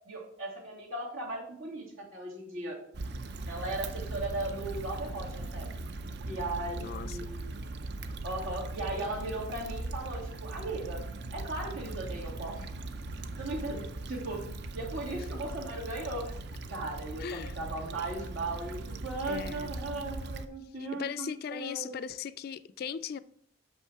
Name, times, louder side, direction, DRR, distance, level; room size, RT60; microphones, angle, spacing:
voice 1, 0.1-1.8 2.1-2.8 3.5-5.7 6.2-7.5 8.2-11.0 11.3-12.7 13.4-14.4 14.7-16.4 16.7-22.0, right 2 dB, 85° right, 2.4 m, -37 dB
Stream / Traffic noise roadway noise / Trickle dribble, 2.9-20.5, right 2 dB, 55° right, 0.5 m, -39 dB
voice 2, 6.8-7.3 17.2-17.5 19.3-19.7 21.0-23.2, left 7 dB, 50° left, 0.3 m, -38 dB
6.2 x 5.5 x 4.7 m
head